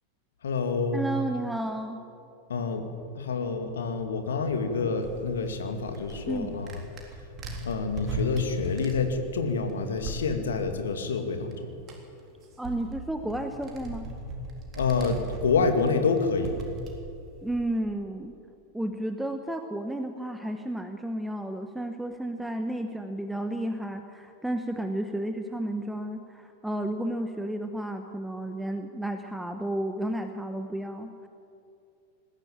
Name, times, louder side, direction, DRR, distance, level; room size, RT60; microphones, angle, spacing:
voice 1, 0.4-1.1 2.5-2.9 3.2-6.8 7.6-11.8 14.7-16.5, left 4 dB, 65° left, 6 dB, 2.2 m, -27 dB
voice 2, 0.9-2.0 6.3-6.6 12.6-14.1 17.4-18.3 18.7-31.3, right 1 dB, 5° right, 6 dB, 1.1 m, -32 dB
sound 1, 5.0-10.6 11.5-11.6 11.8-17.8, right 1 dB, 30° right, 3.6 m, -38 dB
20.5 x 15.0 x 8.8 m, 2.6 s
figure-of-eight pair, 90°, 0 cm